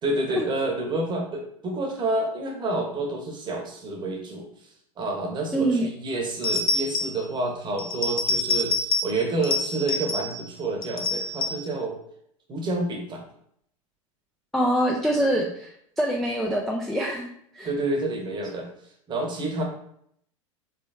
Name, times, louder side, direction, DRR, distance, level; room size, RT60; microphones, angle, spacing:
voice 1, 0.0-4.5 5.0-8.8 9.0-12.0 12.5-13.2 17.6-18.7 19.1-19.6, right 2 dB, 25° right, 1 dB, 1.0 m, -28 dB
voice 2, 5.5-5.9 14.5-15.7 16.0-17.3 17.5-17.7, right 1 dB, ahead, -2 dB, 0.4 m, -24 dB
sound 1, 6.4-7.3 7.8-9.2 9.4-10.5 10.8-11.7, left 2 dB, 80° left, 0.5 m, -27 dB
3.4 x 3.3 x 2.8 m, 0.69 s
hypercardioid pair, 90°, 17 cm